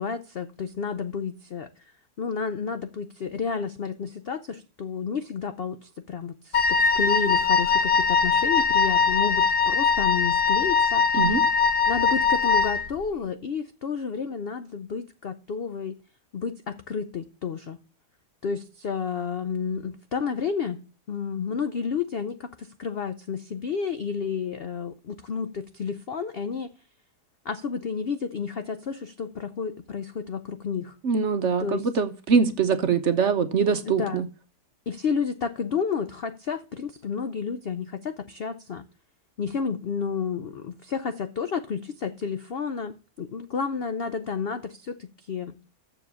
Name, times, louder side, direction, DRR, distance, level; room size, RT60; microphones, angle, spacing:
voice 1, 0.0-1.8 2.2-11.2 11.9-15.9 16.3-17.8 18.4-26.7 27.4-31.0 31.6-31.9 33.9-34.2 34.9-38.8 39.4-45.6, left 6 dB, 75° left, 0.5 m, -31 dB
Wind instrument woodwind instrument, 6.5-12.9, left 5 dB, 45° left, 0.8 m, -21 dB
voice 2, 31.0-34.3, right 5 dB, 55° right, 0.9 m, -23 dB
7.4 x 7.0 x 6.8 m
omnidirectional pair, 1.8 m